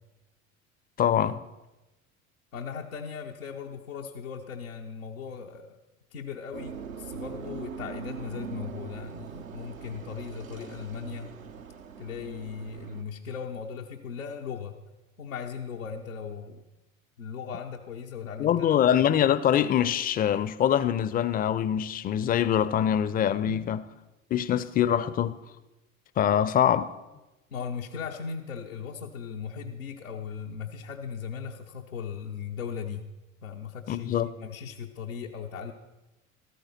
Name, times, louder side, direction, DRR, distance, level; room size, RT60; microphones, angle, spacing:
voice 1, 1.0-1.4 18.4-23.8 24.3-25.3 26.2-26.9 33.9-34.3, left 10 dB, 20° left, 0.5 m, -24 dB
voice 2, 2.5-5.8 6.1-11.3 12.0-14.8 15.2-16.6 17.2-18.8 23.4-23.7 27.5-33.0 33.4-35.7, left 6 dB, 85° left, 0.7 m, -38 dB
sound 1, 6.5-13.0, right 7 dB, 80° right, 0.9 m, -41 dB
13.5 x 13.5 x 4.2 m
figure-of-eight pair, 65°, 40 cm